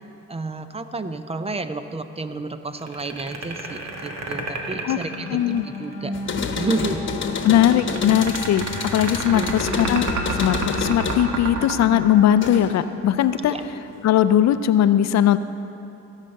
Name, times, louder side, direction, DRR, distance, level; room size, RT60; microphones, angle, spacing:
voice 1, 0.3-5.4 5.6-6.1 6.6-7.0 9.2-9.5 13.5-13.6, right 3 dB, 20° right, 10 dB, 0.5 m, -30 dB
sound 1, 2.8-5.9 7.4-12.9, right 3 dB, 65° right, 1.5 m, -30 dB
sound 2, 3.4-13.7, left 2 dB, 20° left, 1.5 m, -36 dB
voice 2, 5.3-5.6 7.4-10.1 10.3-13.6 14.0-15.4, left 11 dB, 60° left, 13 dB, 0.5 m, -19 dB
sound 3, 6.1-12.9 13.2-14.1, left 5 dB, 40° left, 1.1 m, -30 dB
17.0 x 5.7 x 6.4 m, 2.9 s
cardioid pair, 90°, 30 cm